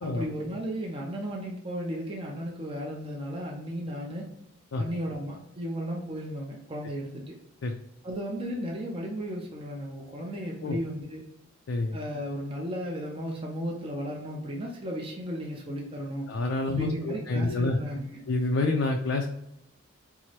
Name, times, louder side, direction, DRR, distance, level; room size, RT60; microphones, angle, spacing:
voice 1, 0.0-4.3 4.8-7.4 8.0-11.3 11.9-16.3 16.7-18.2, equal, 25° right, -1 dB, 0.5 m, -35 dB
voice 2, 16.3-17.8 18.3-19.3, left 2 dB, 65° left, 2 dB, 0.4 m, -27 dB
4.5 x 2.0 x 2.8 m, 0.82 s
head